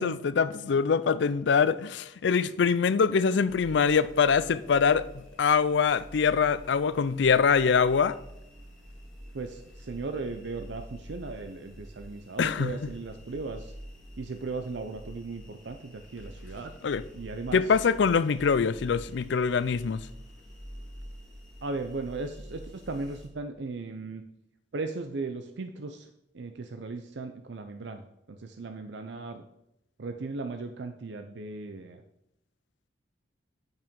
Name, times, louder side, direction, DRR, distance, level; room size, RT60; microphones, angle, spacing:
voice 1, 0.0-5.1 5.4-8.2 12.4-12.7 16.8-17.0 17.5-20.0, left 6 dB, 70° left, 0.4 m, -24 dB
sound 1, 3.5-23.3, equal, 5° left, 1.8 m, -47 dB
voice 2, 9.3-13.7 14.2-16.7 17.1-17.7 21.6-24.2 24.7-26.1 26.3-29.4 30.0-32.0, right 3 dB, 70° right, 0.5 m, -37 dB
9.2 x 5.6 x 5.2 m
head